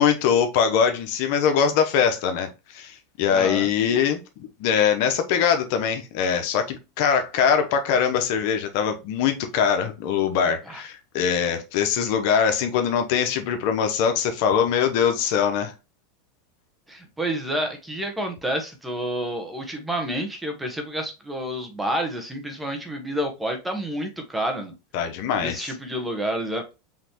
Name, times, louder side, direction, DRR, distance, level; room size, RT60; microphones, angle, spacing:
voice 1, 0.0-4.2 4.6-15.7 24.9-25.7, left 7 dB, 60° left, 1.0 m, -22 dB
voice 2, 3.3-3.7 10.7-10.8 16.9-24.7 25.4-26.6, right 1 dB, 10° right, 1.3 m, -29 dB
5.6 x 3.1 x 3.0 m
supercardioid pair, 130°, 0 cm